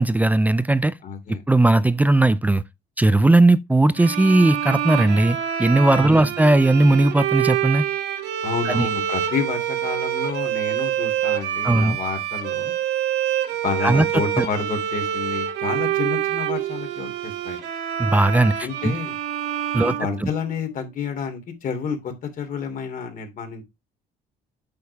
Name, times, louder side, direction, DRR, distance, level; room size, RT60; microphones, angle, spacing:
voice 1, 0.0-1.0 1.3-2.6 3.0-7.9 8.7-8.9 11.6-12.0 13.8-14.1 14.4-14.5 18.0-19.0 19.7-19.9 20.2-20.3, right 2 dB, 10° right, 0.5 m, -18 dB
voice 2, 1.0-1.4 6.0-6.3 8.4-12.7 13.6-17.6 18.6-19.2 19.8-23.6, left 6 dB, 55° left, 3.0 m, -29 dB
sound 1, 3.9-20.8, right 10 dB, 80° right, 2.0 m, -26 dB
8.7 x 6.6 x 3.5 m
cardioid pair, 110°, 17 cm